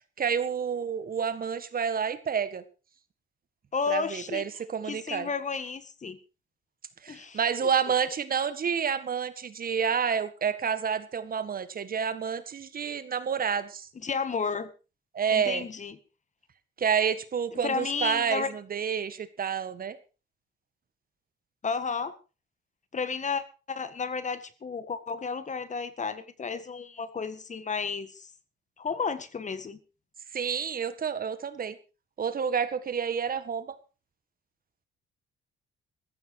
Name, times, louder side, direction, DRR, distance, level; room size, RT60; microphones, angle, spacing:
voice 1, 0.2-2.6 3.9-5.3 7.0-13.9 15.1-15.7 16.8-20.0 30.3-31.8 32.2-33.8, right 7 dB, 45° right, 13 dB, 1.7 m, -29 dB
voice 2, 3.7-4.5 4.8-6.2 7.1-7.7 14.0-14.7 15.3-16.0 17.5-18.5 21.6-22.1 22.9-28.3 28.8-29.8, left 5 dB, 35° left, 13 dB, 1.8 m, -32 dB
14.5 x 14.5 x 4.8 m, 0.33 s
cardioid pair, 90°, 20 cm